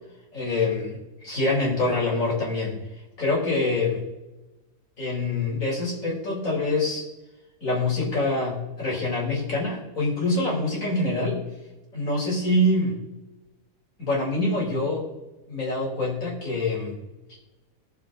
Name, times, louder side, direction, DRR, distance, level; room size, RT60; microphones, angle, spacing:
voice 1, 0.3-2.8 3.2-4.1 5.0-7.1 7.6-11.4 11.9-12.9 14.0-15.1 15.5-17.0, left 2 dB, 70° left, -3 dB, 4.2 m, -25 dB
20.5 x 7.4 x 3.8 m, 1.1 s
omnidirectional pair, 1.5 m